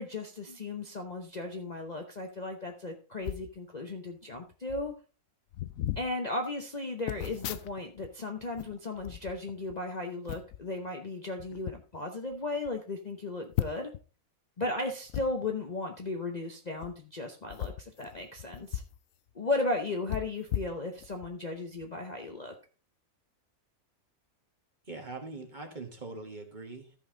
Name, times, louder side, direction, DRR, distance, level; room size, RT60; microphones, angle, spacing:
voice 1, 0.0-4.9 6.0-13.9 14.6-18.8 19.3-22.5, left 2 dB, 35° left, 2 dB, 0.8 m, -35 dB
sound 1, 3.2-3.5 4.4-4.5 4.7-4.9 5.5-6.1 7.1-8.1 8.4-9.8 10.3-10.6 11.4-11.8 12.3-12.4 12.7-12.8 13.5-14.0 15.1-15.3 16.7-16.9 17.5-19.0 19.3-19.4 20.1-21.3 21.8-21.9, left 12 dB, 70° left, 0.9 m, -37 dB
voice 2, 24.8-26.9, right 3 dB, 30° right, 3 dB, 1.6 m, -42 dB
14.0 x 5.5 x 3.9 m, 0.35 s
omnidirectional pair, 1.6 m